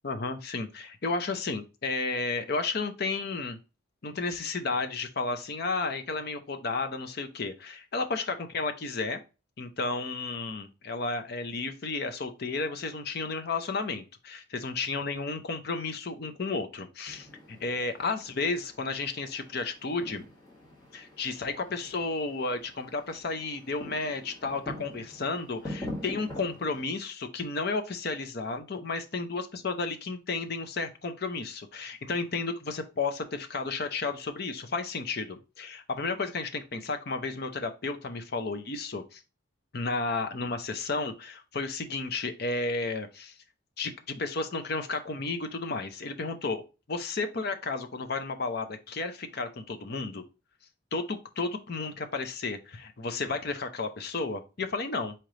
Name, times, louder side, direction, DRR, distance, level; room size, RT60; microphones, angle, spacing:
voice 1, 0.0-3.6 4.0-9.2 9.6-17.3 17.6-20.3 20.9-39.2 39.7-43.3 43.8-46.6 46.9-50.2 50.9-55.1, left 3 dB, 50° left, 8 dB, 0.6 m, -32 dB
sound 1, 17.1-26.8, left 1 dB, 20° left, 1.4 m, -45 dB
4.4 x 3.2 x 3.7 m, 0.30 s
head